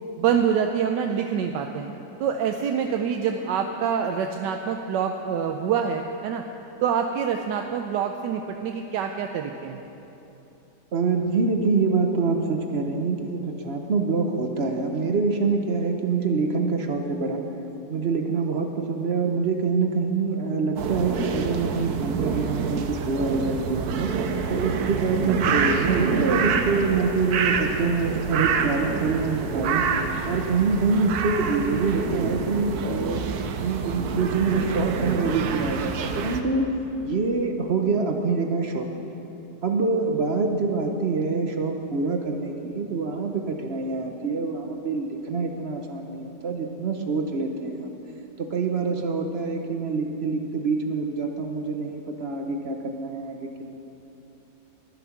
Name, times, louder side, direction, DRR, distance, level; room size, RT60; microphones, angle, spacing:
voice 1, 0.2-1.9 2.2-6.4 6.8-9.8, right 7 dB, 80° right, 4 dB, 1.2 m, -26 dB
voice 2, 10.9-17.4 17.9-24.1 24.5-29.8 30.2-33.2 33.6-36.7 37.0-38.9 39.6-47.9 48.4-53.6, right 4 dB, 50° right, 4 dB, 0.8 m, -25 dB
sound 1, 20.8-36.4, right 5 dB, 65° right, 1.2 m, -27 dB
12.0 x 10.5 x 5.8 m, 3.0 s
omnidirectional pair, 1.9 m